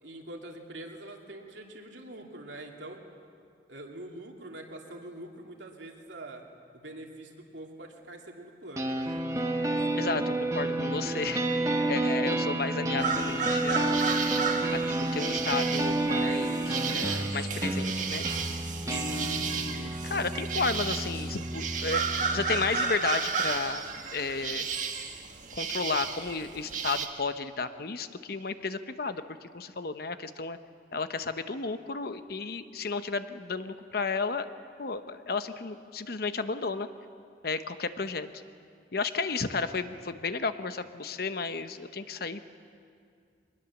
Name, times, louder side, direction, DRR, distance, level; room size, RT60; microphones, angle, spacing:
voice 1, 0.0-3.0 3.7-6.4 6.7-9.5 10.1-10.2, right 1 dB, 85° right, 1 dB, 2.6 m, -44 dB
sound 1, 8.8-22.7, right 2 dB, 15° right, 1.2 m, -30 dB
voice 2, 10.5-11.6 11.9-14.0 14.7-14.8 15.1-18.2 18.8-23.8 24.1-24.7 25.5-30.6 30.9-34.5 34.8-36.9 37.4-38.3 38.9-42.5, left 4 dB, 55° left, 10 dB, 0.9 m, -33 dB
sound 2, 13.0-27.1, right 5 dB, 45° right, 1.5 m, -33 dB
23.5 x 20.0 x 7.2 m, 2.3 s
head